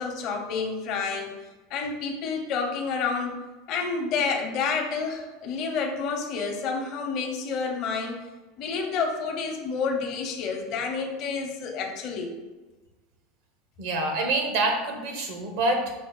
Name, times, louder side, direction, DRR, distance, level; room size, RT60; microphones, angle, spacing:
voice 1, 0.0-1.3 1.7-8.2 8.6-12.3, left 5 dB, 50° left, 2 dB, 0.8 m, -29 dB
voice 2, 13.8-15.9, right 2 dB, 70° right, 3 dB, 0.9 m, -26 dB
5.4 x 2.0 x 4.7 m, 1.2 s
supercardioid pair, 115°, 0 cm